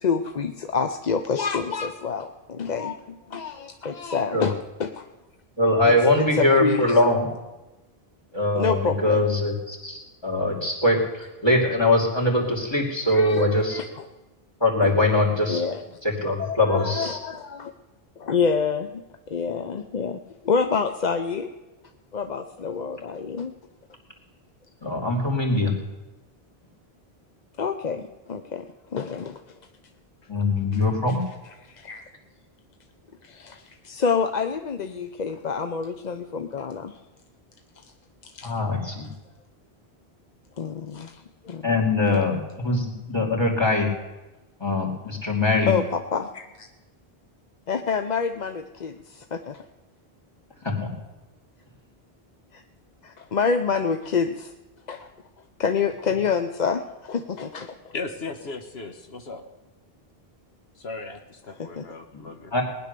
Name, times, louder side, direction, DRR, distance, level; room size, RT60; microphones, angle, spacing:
voice 1, 0.0-5.1 5.8-7.0 8.6-9.2 13.1-14.0 14.8-14.9 15.5-15.8 16.4-17.7 18.2-19.0 19.3-20.2 20.4-21.5 22.1-23.5 27.6-29.4 30.7-30.8 31.7-32.1 33.2-37.0 38.2-38.5 40.6-41.8 45.7-46.7 47.7-49.6 52.5-52.6 53.0-54.5 54.9-55.1 55.6-57.8 61.8-61.9, left 5 dB, 50° left, 7 dB, 0.8 m, -27 dB
voice 2, 5.6-7.3 8.3-13.8 14.6-15.6 16.0-17.2 24.8-25.7 30.3-31.3 38.4-39.1 41.6-43.9 44.6-45.7 50.6-50.9 62.1-62.2 62.5-62.6, left 2 dB, 25° left, 0 dB, 2.8 m, -22 dB
voice 3, 57.9-59.4 60.7-62.6, left 3 dB, 85° left, 5 dB, 1.5 m, -36 dB
19.0 x 10.5 x 6.7 m, 1.1 s
omnidirectional pair, 1.0 m